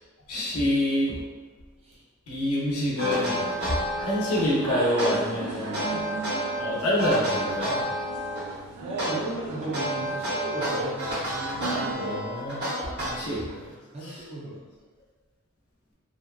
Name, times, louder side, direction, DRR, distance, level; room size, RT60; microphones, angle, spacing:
voice 1, 0.3-1.1 2.3-3.4 4.0-5.8 6.6-7.8 11.9-12.6 13.0-13.4 14.0-14.1, left 1 dB, 85° left, -5 dB, 0.7 m, -26 dB
sound 1, 3.0-4.5 5.0-6.6 7.0-8.5 9.0-13.5, equal, 50° right, 0.9 m, -30 dB
sound 2, 3.0-11.9, right 3 dB, 80° right, 0.3 m, -37 dB
voice 2, 8.8-11.2 11.9-12.2 13.1-14.6, right 1 dB, 25° right, -7 dB, 0.5 m, -35 dB
2.7 x 2.2 x 2.3 m, 1.4 s
head